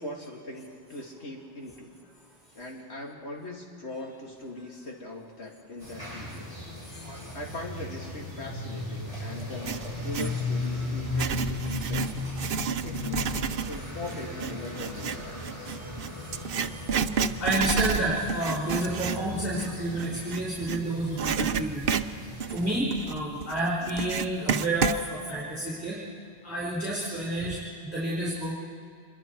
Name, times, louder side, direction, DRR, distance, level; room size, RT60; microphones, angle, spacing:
voice 1, 0.0-1.9 2.5-6.6 7.3-12.2 12.5-15.7, left 2 dB, 80° left, 0 dB, 2.5 m, -40 dB
sound 1, 5.8-22.7, left 2 dB, 30° left, 7.3 m, -36 dB
voice 2, 6.8-7.3 11.7-11.8 15.6-21.9 22.5-26.0 26.4-28.5, right 1 dB, 5° right, -7 dB, 4.9 m, -30 dB
Writing, 9.4-10.4 11.0-20.8 21.2-25.0, right 6 dB, 65° right, 0.9 m, -30 dB
26.0 x 22.5 x 4.6 m, 2.4 s
omnidirectional pair, 1.1 m